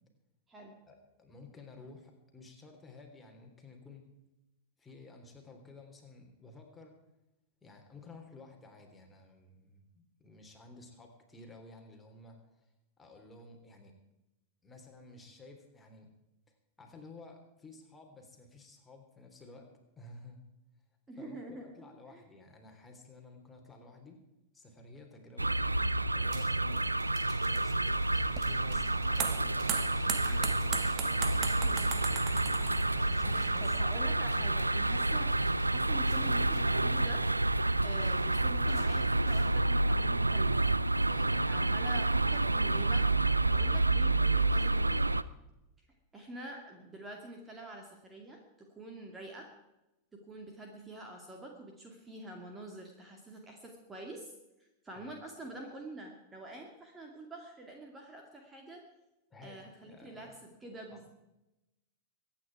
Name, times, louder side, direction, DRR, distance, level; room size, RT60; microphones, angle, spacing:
voice 1, 0.9-4.1 4.8-6.9 7.6-12.7 13.0-13.9 14.6-16.1 16.5-19.7 20.0-20.4 21.2-24.2 24.5-25.5 26.1-26.9 27.4-32.2 32.9-34.7 35.1-35.2 41.1-41.5 55.0-55.1 59.3-60.3 60.9-61.0, left 3 dB, 10° left, 2 dB, 3.6 m, -53 dB
voice 2, 21.1-22.2 31.6-31.9 33.6-35.3 35.7-37.3 37.8-40.7 41.4-43.1 43.4-45.2 46.1-49.5 50.1-54.3 54.8-58.9 59.4-61.1, right 1 dB, 15° right, 1 dB, 2.4 m, -47 dB
sound 1, 25.4-45.2, right 2 dB, 85° right, 0.4 m, -29 dB
sound 2, 26.2-39.5, right 4 dB, 55° right, 3.4 m, -55 dB
sound 3, 28.1-33.8, right 9 dB, 30° right, 1.3 m, -39 dB
24.0 x 9.7 x 4.8 m, 0.95 s
figure-of-eight pair, 90°, 0 cm